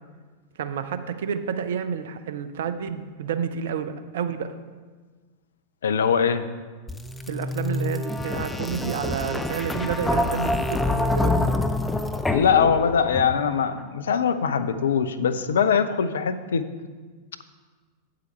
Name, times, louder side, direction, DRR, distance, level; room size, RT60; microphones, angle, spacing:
voice 1, 0.6-4.5 7.3-11.3, right 7 dB, 60° right, 11 dB, 0.6 m, -30 dB
voice 2, 5.8-6.5 12.3-16.6, left 7 dB, 65° left, 11 dB, 0.5 m, -22 dB
sound 1, 6.9-13.6, left 2 dB, 5° left, 0.5 m, -26 dB
8.4 x 7.7 x 4.4 m, 1.4 s
figure-of-eight pair, 90°, 0 cm